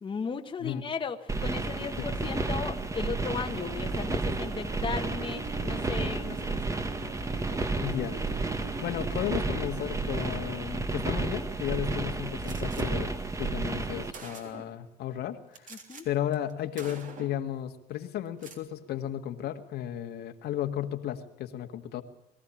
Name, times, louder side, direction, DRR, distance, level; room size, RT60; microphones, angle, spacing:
voice 1, 0.0-6.8 15.7-16.0, left 5 dB, 30° left, 5 dB, 1.4 m, -36 dB
sound 1, 1.3-14.1, right 3 dB, 20° right, 1.5 m, -32 dB
sound 2, 3.2-10.7, right 7 dB, 70° right, 2.9 m, -44 dB
voice 2, 7.8-8.5 8.8-13.1 13.4-15.7 16.1-22.0, left 11 dB, 75° left, 5 dB, 1.8 m, -34 dB
Gunshot gunfire, 12.4-12.9 13.7-13.8 14.1-14.8 15.5-16.0 16.3-16.5 16.8-17.4 18.3-18.6, right 4 dB, 50° right, 3.4 m, -46 dB
22.0 x 14.5 x 8.6 m, 0.87 s
cardioid pair, 110°, 17 cm